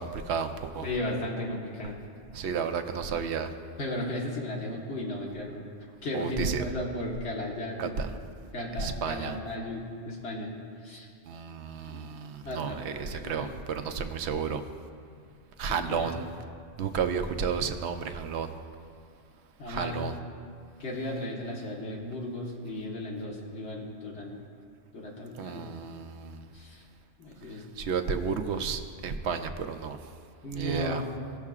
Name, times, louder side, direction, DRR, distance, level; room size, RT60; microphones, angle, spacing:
voice 1, 0.0-0.9 2.3-3.5 6.1-6.6 7.8-8.2 8.8-9.4 11.3-14.6 15.6-16.2 16.8-18.5 19.7-20.2 25.4-26.4 27.8-30.0 30.5-31.0, right 6 dB, 75° right, 8 dB, 0.9 m, -32 dB
voice 2, 0.8-2.0 3.8-5.6 6.0-8.0 8.5-10.5 10.8-11.1 11.9-12.0 12.4-13.5 15.9-16.1 19.6-20.0 20.8-24.4 24.9-25.6 26.5-26.8 27.2-27.6 30.4-31.1, left 1 dB, 70° left, -2 dB, 1.6 m, -35 dB
18.0 x 6.5 x 2.4 m, 2.3 s
omnidirectional pair, 1.2 m